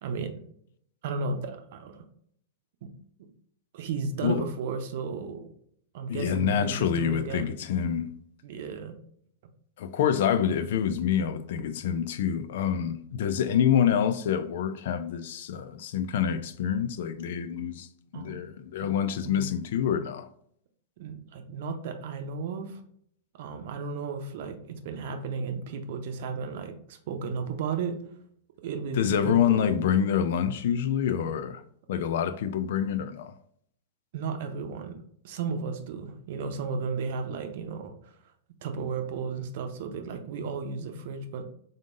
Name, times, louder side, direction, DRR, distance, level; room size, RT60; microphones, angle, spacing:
voice 1, 0.0-0.4 1.0-2.0 2.8-2.9 3.7-5.5 5.9-7.6 8.4-8.9 18.1-18.3 18.8-18.9 19.2-19.4 21.0-22.8 23.4-27.9 28.6-29.8 34.1-38.1 38.6-41.4, right 5 dB, 55° right, 0.7 m, -34 dB
voice 2, 6.1-8.1 9.8-17.9 18.1-20.3 29.0-31.6 31.9-33.3, left 8 dB, 60° left, 0.4 m, -27 dB
3.8 x 3.6 x 2.5 m
figure-of-eight pair, 100°, 0 cm